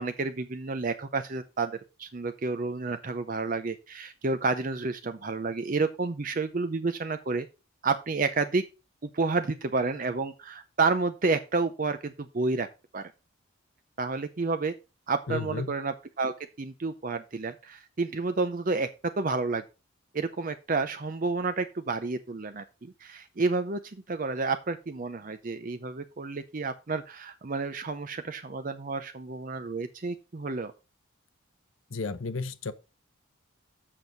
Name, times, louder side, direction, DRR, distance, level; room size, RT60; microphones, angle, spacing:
voice 1, 0.0-7.5 7.8-8.6 9.0-12.7 12.9-13.0 14.0-14.7 15.1-18.9 19.2-19.6 20.1-30.7, right 3 dB, 40° right, 0.6 m, -30 dB
voice 2, 15.3-15.7 31.9-32.7, left 4 dB, 70° left, 0.8 m, -33 dB
7.5 x 6.2 x 5.1 m
head